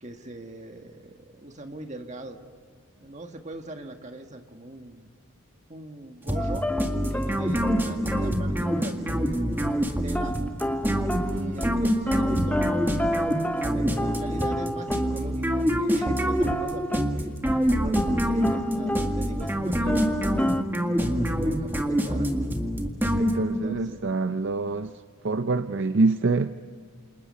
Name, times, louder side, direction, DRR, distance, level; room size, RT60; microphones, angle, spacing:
voice 1, 0.0-2.4 3.0-5.1 5.7-6.7 7.1-10.4 11.2-13.3 13.7-20.6 21.0-22.3 23.4-24.0, right 1 dB, 30° right, 1.7 m, -41 dB
sound 1, 6.3-8.8 9.6-9.8 10.1-15.7 16.0-17.2 17.4-17.6 17.9-19.6 19.9-20.6, left 1 dB, 5° left, 0.7 m, -31 dB
sound 2, 6.3-23.8, equal, 10° right, 1.8 m, -26 dB
voice 2, 23.2-24.9 25.2-26.5, right 3 dB, 55° right, 0.5 m, -25 dB
29.0 x 28.0 x 5.5 m
head